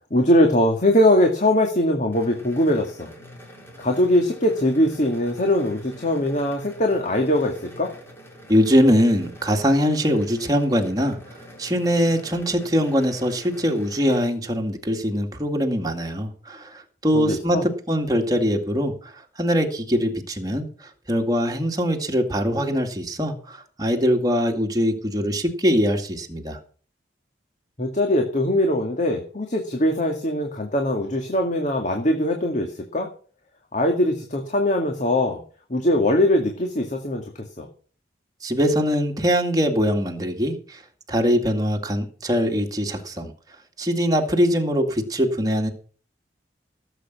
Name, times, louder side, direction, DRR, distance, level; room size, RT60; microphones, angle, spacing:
voice 1, 0.1-3.1 3.8-7.9 17.1-17.7 27.8-33.1 33.7-35.4 35.7-37.7, left 1 dB, 45° left, 3 dB, 2.2 m, -21 dB
sound 1, 2.1-14.2, equal, 15° left, 3.5 m, -45 dB
voice 2, 8.5-11.2 11.6-19.1 19.4-20.7 21.1-26.6 38.4-40.8 41.1-43.3 43.8-45.7, equal, 20° right, 2 dB, 2.3 m, -22 dB
17.0 x 8.1 x 6.1 m, 0.42 s
head